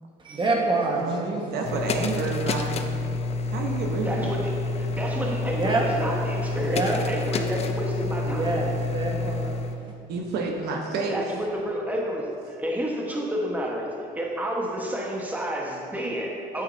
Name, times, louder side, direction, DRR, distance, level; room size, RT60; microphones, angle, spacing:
voice 1, 0.2-1.5 1.7-1.9 5.5-5.9 6.5-7.0 8.2-9.9, right 2 dB, 30° right, -1 dB, 1.3 m, -27 dB
voice 2, 0.9-4.4 10.1-11.2, right 4 dB, 75° right, 1 dB, 0.9 m, -30 dB
sound 1, 1.6-9.8, left 3 dB, 40° left, 0.5 m, -28 dB
voice 3, 4.0-4.5 4.8-8.6 11.1-16.6, equal, 10° right, -2 dB, 1.2 m, -30 dB
8.6 x 7.8 x 2.7 m, 2.5 s
cardioid pair, 110°, 17 cm